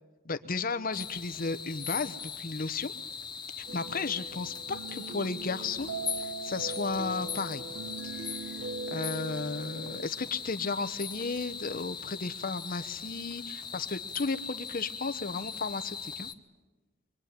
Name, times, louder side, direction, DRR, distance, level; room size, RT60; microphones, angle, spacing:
voice 1, 0.2-2.9 3.6-7.6 8.0-8.5 8.9-16.3, left 4 dB, 45° left, 11 dB, 0.9 m, -34 dB
sound 1, 0.9-16.3, left 6 dB, 20° left, 1.2 m, -40 dB
sound 2, 3.7-10.1, right 3 dB, 65° right, 1.2 m, -40 dB
24.5 x 23.5 x 9.5 m, 1.2 s
head